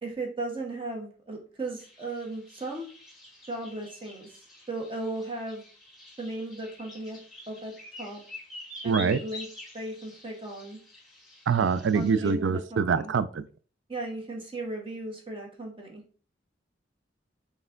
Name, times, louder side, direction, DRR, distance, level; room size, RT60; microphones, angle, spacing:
voice 1, 0.0-2.9 3.5-4.3 4.7-5.6 6.2-7.2 7.5-7.7 8.0-8.2 8.8-9.5 9.7-10.8 11.9-13.1 13.9-16.0, right 2 dB, 30° right, 1 dB, 1.2 m, -36 dB
sound 1, 1.8-12.3, left 1 dB, ahead, 1.4 m, -47 dB
voice 2, 8.8-9.2 11.5-13.4, right 5 dB, 75° right, 15 dB, 0.4 m, -24 dB
4.2 x 3.3 x 3.8 m, 0.40 s
head